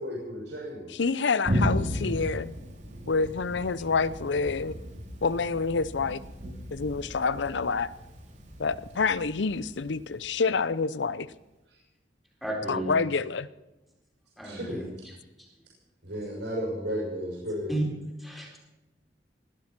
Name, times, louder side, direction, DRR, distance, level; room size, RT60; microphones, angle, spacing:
voice 1, 0.0-0.9 14.4-14.8 16.0-17.7, equal, 85° right, -4 dB, 6.0 m, -33 dB
voice 2, 0.9-2.5 3.1-4.7 5.2-7.9 8.6-11.3 12.7-13.5, left 4 dB, 85° left, 18 dB, 0.6 m, -28 dB
Thunder, 1.4-10.9, equal, 45° right, 2.8 m, -35 dB
voice 3, 12.4-12.9 14.4-14.9 17.7-17.8 18.2-18.6, right 1 dB, ahead, -2 dB, 4.3 m, -32 dB
20.0 x 12.0 x 5.9 m, 1.0 s
head